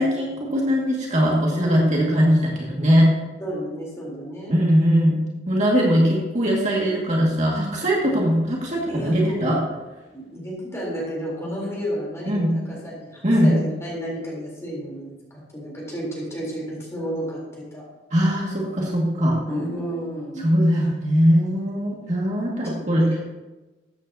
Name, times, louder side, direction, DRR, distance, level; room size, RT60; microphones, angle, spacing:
voice 1, 0.0-3.1 4.5-5.2 5.5-9.6 12.3-12.5 13.2-13.5 18.1-19.4 20.4-23.2, equal, 40° right, -3 dB, 2.1 m, -20 dB
voice 2, 1.5-1.9 3.4-4.6 8.9-9.6 10.1-17.9 19.5-20.5 23.0-23.2, equal, 15° left, -4 dB, 3.8 m, -32 dB
13.5 x 8.8 x 2.9 m, 1.1 s
head